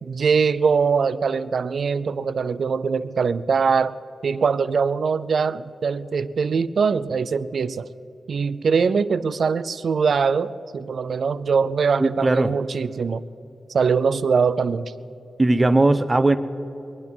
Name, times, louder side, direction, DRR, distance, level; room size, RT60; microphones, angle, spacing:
voice 1, 0.0-4.0 4.2-7.9 8.3-13.2 13.7-14.9, right 5 dB, 75° right, 15 dB, 0.5 m, -22 dB
voice 2, 12.0-12.5 15.4-16.4, right 2 dB, 30° right, 11 dB, 0.8 m, -18 dB
22.5 x 9.6 x 5.6 m, 2.9 s
wide cardioid pair, 95°, 0 cm